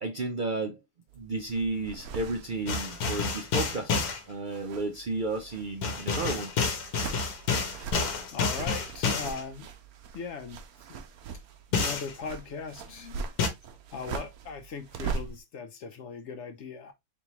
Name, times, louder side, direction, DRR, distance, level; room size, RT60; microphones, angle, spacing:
voice 1, 0.0-0.8 1.2-4.0 4.3-6.5, right 2 dB, 55° right, 0.5 m, -32 dB
sound 1, 1.1-3.9 4.2-15.4, right 5 dB, 80° right, 1.1 m, -41 dB
sound 2, 2.7-4.2 5.8-9.4 11.7-12.1 13.4-13.5, left 4 dB, 90° left, 1.4 m, -29 dB
voice 2, 8.3-9.7 10.1-10.6 11.7-13.3 13.9-16.9, left 5 dB, 65° left, 0.8 m, -39 dB
4.3 x 3.5 x 2.9 m
omnidirectional pair, 1.5 m